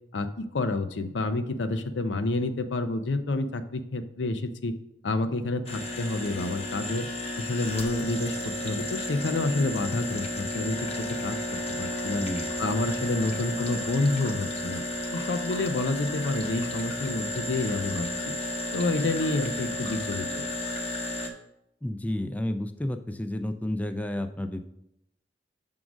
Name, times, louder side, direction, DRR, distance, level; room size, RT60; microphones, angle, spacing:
voice 1, 0.1-4.7 5.0-7.1 7.4-12.2 12.6-14.8 15.1-18.1 18.7-20.4, left 2 dB, 90° left, 9 dB, 0.6 m, -29 dB
sound 1, 5.7-21.3, left 1 dB, 35° left, 0.8 m, -33 dB
voice 2, 12.2-12.6 21.8-24.6, left 1 dB, 10° left, 8 dB, 0.3 m, -31 dB
6.0 x 3.8 x 6.1 m, 0.81 s
head